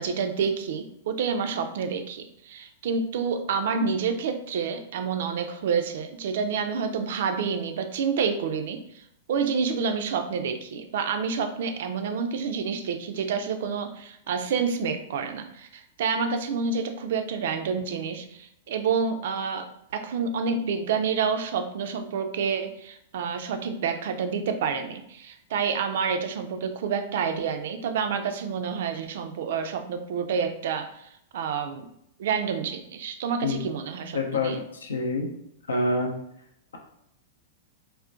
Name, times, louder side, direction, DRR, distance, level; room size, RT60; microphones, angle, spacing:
voice 1, 0.0-9.0 9.3-31.9 32.2-34.6, right 6 dB, 60° right, 7 dB, 0.3 m, -28 dB
voice 2, 34.1-35.3 35.7-36.1, left 2 dB, 75° left, 3 dB, 0.5 m, -26 dB
3.7 x 2.1 x 2.4 m, 0.75 s
figure-of-eight pair, 100°, 0 cm